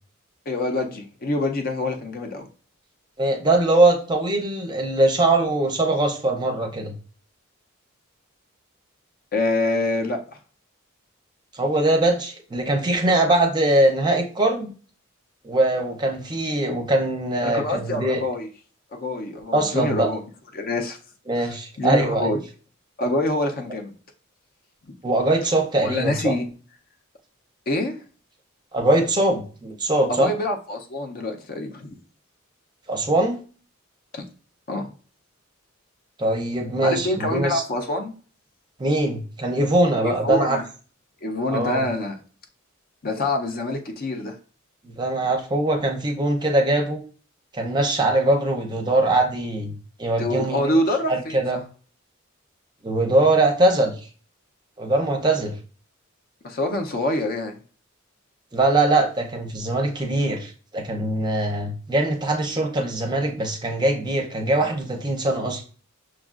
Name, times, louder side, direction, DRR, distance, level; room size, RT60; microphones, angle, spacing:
voice 1, 0.5-2.5 9.3-10.2 17.4-18.5 18.9-20.2 20.5-21.0 21.4-22.4 23.0-23.9 24.8-24.9 25.8-26.5 27.7-28.0 30.1-32.0 34.1-34.2 34.7-34.9 36.8-38.1 40.0-40.6 41.2-42.2 43.0-44.4 50.2-51.6 56.4-57.6, left 2 dB, 45° left, 4 dB, 0.6 m, -26 dB
voice 2, 3.2-6.9 11.5-14.7 15.4-18.2 19.5-20.1 21.3-22.3 25.0-26.3 28.7-30.3 32.9-33.4 36.2-37.6 38.8-40.6 41.5-41.8 44.8-47.0 47.5-49.7 50.0-50.6 51.1-51.6 52.8-53.9 54.8-55.5 58.5-65.6, right 2 dB, 20° right, 2 dB, 0.6 m, -22 dB
6.0 x 2.3 x 2.4 m, 0.39 s
head